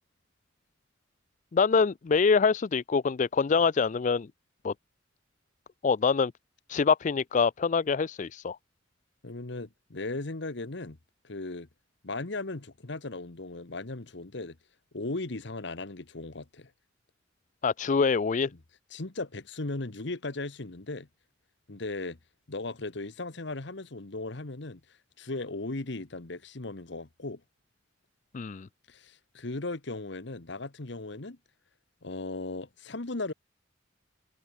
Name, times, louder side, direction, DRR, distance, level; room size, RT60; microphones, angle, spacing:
voice 1, 1.5-4.3 4.6-4.7 5.8-6.3 6.7-8.6 17.6-18.5 28.3-28.7, left 5 dB, 40° left, 0.4 m, -25 dB
voice 2, 9.2-11.0 11.2-11.7 12.0-14.6 14.9-16.7 18.9-21.1 21.7-22.2 22.5-24.8 25.2-27.4 28.9-31.4 32.0-33.3, left 2 dB, 60° left, 1.4 m, -37 dB
head